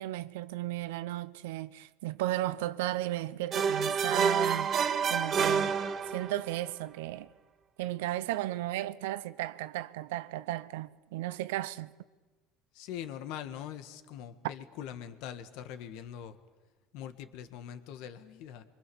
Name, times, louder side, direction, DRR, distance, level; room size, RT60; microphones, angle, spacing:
voice 1, 0.0-5.8 6.1-7.3 7.8-11.9, right 15 dB, 90° right, 0.8 m, -35 dB
sound 1, 3.5-6.5, right 6 dB, 40° right, 2.2 m, -28 dB
voice 2, 12.7-16.4 16.9-18.6, left 9 dB, 75° left, 1.7 m, -42 dB
27.0 x 24.0 x 7.1 m
supercardioid pair, 100°, 0 cm